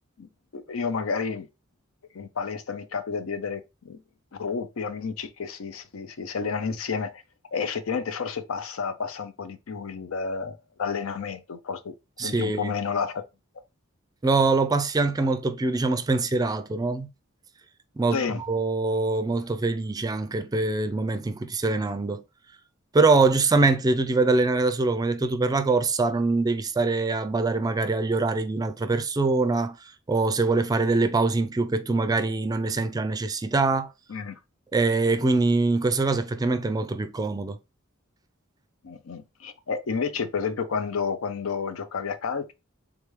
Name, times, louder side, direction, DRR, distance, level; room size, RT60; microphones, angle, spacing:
voice 1, 0.2-1.5 2.1-4.0 4.3-7.2 7.5-11.9 12.2-13.2 18.1-18.4 34.1-34.4 38.8-42.5, left 5 dB, 85° left, 0.5 m, -31 dB
voice 2, 12.2-12.7 14.2-17.1 18.0-18.2 18.5-22.2 22.9-29.8 30.1-33.9 34.7-37.6, right 3 dB, 20° right, 0.4 m, -23 dB
3.6 x 3.4 x 3.1 m
head